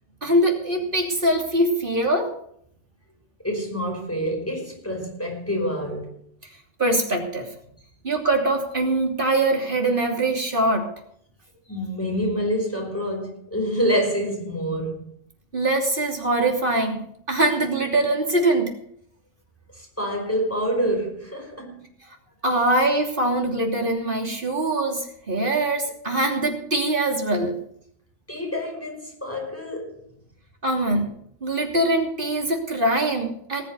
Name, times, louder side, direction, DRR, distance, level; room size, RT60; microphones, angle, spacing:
voice 1, 0.2-2.4 6.8-7.5 8.0-10.9 15.5-17.0 17.3-18.7 22.4-27.5 30.6-31.1 31.4-33.6, right 1 dB, 45° right, 3.2 m, -23 dB
voice 2, 3.4-6.1 11.7-15.1 19.7-21.8 28.3-30.0, equal, 10° left, 5.1 m, -27 dB
19.5 x 7.5 x 6.7 m
omnidirectional pair, 1.2 m